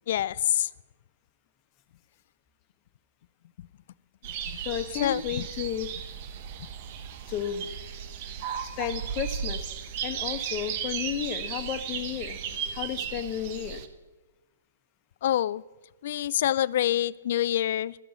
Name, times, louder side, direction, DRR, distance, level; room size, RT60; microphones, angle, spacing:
voice 1, 0.1-0.7 5.0-5.2 15.2-15.6 16.0-18.0, left 12 dB, 55° left, 21 dB, 0.3 m, -26 dB
sound 1, 4.2-13.9, right 8 dB, 45° right, 1.1 m, -35 dB
voice 2, 4.6-5.9 7.3-7.7 8.8-9.7 10.0-13.8, left 10 dB, 35° left, 9 dB, 1.1 m, -33 dB
12.5 x 7.8 x 6.6 m, 1.2 s
hypercardioid pair, 130°, 0 cm